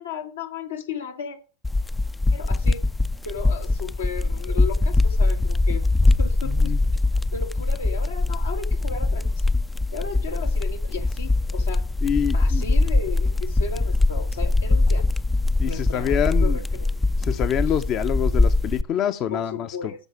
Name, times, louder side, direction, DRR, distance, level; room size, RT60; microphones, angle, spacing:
voice 1, 0.0-1.4 2.3-2.8 3.2-6.7 7.3-9.5 9.9-11.9 12.3-15.1 15.7-16.9 19.3-20.1, left 5 dB, 75° left, 4 dB, 1.9 m, -35 dB
sound 1, 1.6-18.8, left 2 dB, 10° left, 0.4 m, -22 dB
voice 2, 6.4-6.8 12.0-12.6 15.6-16.6 17.2-19.9, left 9 dB, 40° left, 10 dB, 0.8 m, -26 dB
13.5 x 4.9 x 6.0 m, 0.36 s
figure-of-eight pair, 90°, 0 cm